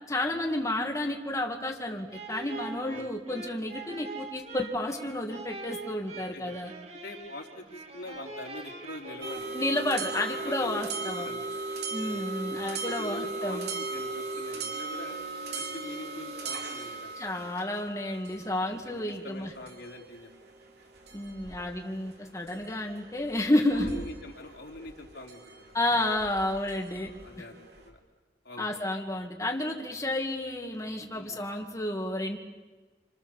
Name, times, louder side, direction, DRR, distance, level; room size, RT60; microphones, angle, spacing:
voice 1, 0.1-6.7 9.5-11.3 11.9-13.7 17.2-19.5 21.1-23.9 25.7-27.1 28.6-32.4, left 1 dB, 20° left, 1 dB, 2.2 m, -31 dB
sound 1, 2.1-10.2, right 3 dB, 35° right, 2.6 m, -44 dB
voice 2, 6.1-6.5 7.0-9.4 10.3-11.5 12.0-12.3 12.7-15.2 15.5-17.1 18.7-20.3 23.7-25.6 26.9-28.0 28.4-28.7 31.1-31.4, left 2 dB, 70° left, 1 dB, 4.3 m, -44 dB
sound 2, 9.2-27.9, right 3 dB, 65° right, 4.2 m, -38 dB
28.5 x 27.5 x 7.3 m, 1.2 s
head